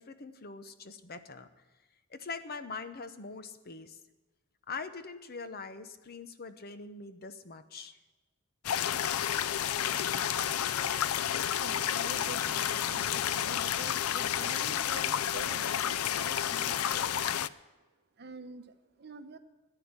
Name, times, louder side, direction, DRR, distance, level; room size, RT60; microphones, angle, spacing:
voice 1, 0.0-1.5 2.1-4.0 4.7-8.0, left 4 dB, 45° left, 11 dB, 0.9 m, -43 dB
sound 1, 8.6-17.5, left 10 dB, 90° left, 0.5 m, -30 dB
voice 2, 11.4-17.2 18.2-19.4, right 3 dB, 50° right, 9 dB, 1.0 m, -47 dB
13.5 x 10.0 x 8.8 m, 1.2 s
head